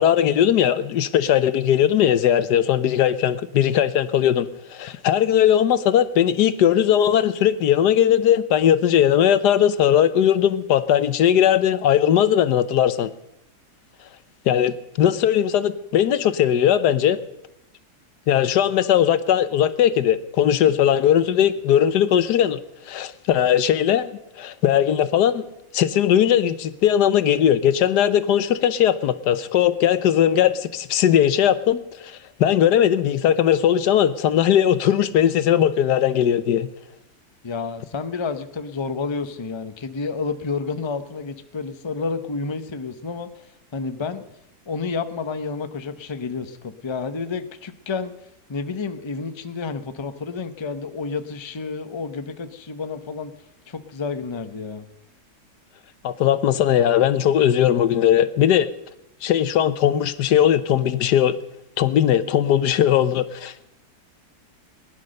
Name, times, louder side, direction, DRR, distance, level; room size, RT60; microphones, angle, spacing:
voice 1, 0.0-13.1 14.5-17.2 18.3-22.6 22.9-25.4 25.7-36.7 56.0-58.7 59.2-61.4 61.8-63.6, left 10 dB, 80° left, 14 dB, 1.4 m, -19 dB
voice 2, 37.4-43.5 43.7-44.2 44.7-48.1 48.5-53.3 53.7-54.8, left 4 dB, 25° left, 9 dB, 0.7 m, -30 dB
20.5 x 10.5 x 6.5 m, 0.87 s
omnidirectional pair, 1.8 m